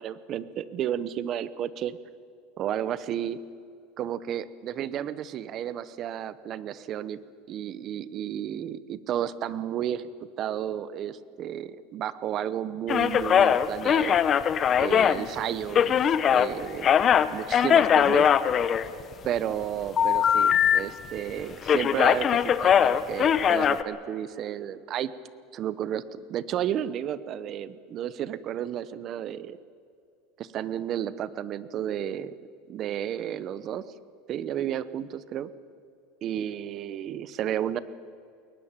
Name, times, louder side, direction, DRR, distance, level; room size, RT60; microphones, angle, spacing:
voice 1, 0.0-2.0 2.6-3.4 4.0-7.2 7.5-10.1 10.4-14.2 14.8-16.9 17.3-18.3 19.2-25.1 25.5-29.6 30.4-32.3 32.7-33.9 34.3-35.5 36.2-37.8, right 10 dB, 40° right, 16 dB, 0.8 m, -32 dB
sound 1, 12.9-16.5 16.8-19.3 20.0-20.8 21.0-21.3 21.6-23.8, left 8 dB, 30° left, 0.8 m, -21 dB
21.5 x 19.5 x 7.4 m, 2.4 s
supercardioid pair, 140°, 0 cm